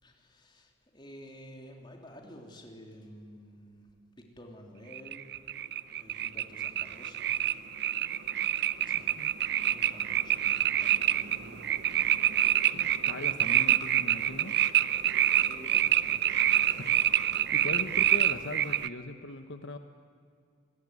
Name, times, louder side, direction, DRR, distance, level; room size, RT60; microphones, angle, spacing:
voice 1, 0.0-5.4 5.9-7.4 7.9-8.0 8.8-12.7 15.4-17.1, equal, 25° left, 1 dB, 3.4 m, -52 dB
sound 1, 4.9-18.9, right 11 dB, 55° right, 0.6 m, -27 dB
voice 2, 12.7-14.6 16.6-16.9 17.3-19.8, left 2 dB, 65° left, 7 dB, 1.1 m, -40 dB
28.5 x 19.5 x 9.7 m, 2.2 s
head